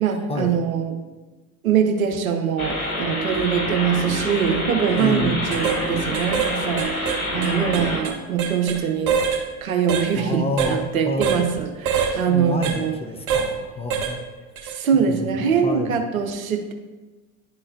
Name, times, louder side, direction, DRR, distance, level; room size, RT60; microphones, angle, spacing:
voice 1, 0.0-1.0 1.6-6.9 7.3-9.2 9.6-13.0 14.8-16.7, right 7 dB, 75° right, 4 dB, 0.8 m, -23 dB
sound 1, 2.6-8.0, left 1 dB, 85° left, 1.1 m, -27 dB
sound 2, 4.9-5.1 5.5-5.8 6.1-6.5 6.8-8.8 9.1-9.4 9.9-10.1 10.6-10.7 11.2-11.4 11.9-12.1 12.6-12.8 13.3-13.5 13.9-14.1 14.6-14.7, right 7 dB, 50° right, 1.2 m, -24 dB
voice 2, 5.0-5.5 10.1-11.4 12.3-14.2 15.2-15.3 15.6-15.9, left 2 dB, 15° left, 5 dB, 0.5 m, -28 dB
11.0 x 3.8 x 2.7 m, 1.2 s
figure-of-eight pair, 70°, 42 cm